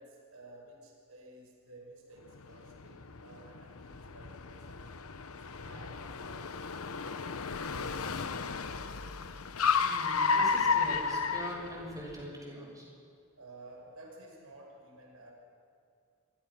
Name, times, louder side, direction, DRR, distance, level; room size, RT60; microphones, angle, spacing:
voice 1, 0.0-5.0 5.2-6.5 7.7-8.5 13.4-15.3, right 1 dB, 80° right, 0 dB, 5.6 m, -53 dB
Car, 2.3-12.2, left 5 dB, 85° left, 1.0 m, -33 dB
voice 2, 9.8-12.8, right 1 dB, 15° right, -2 dB, 6.8 m, -42 dB
27.0 x 23.5 x 6.1 m, 2.3 s
head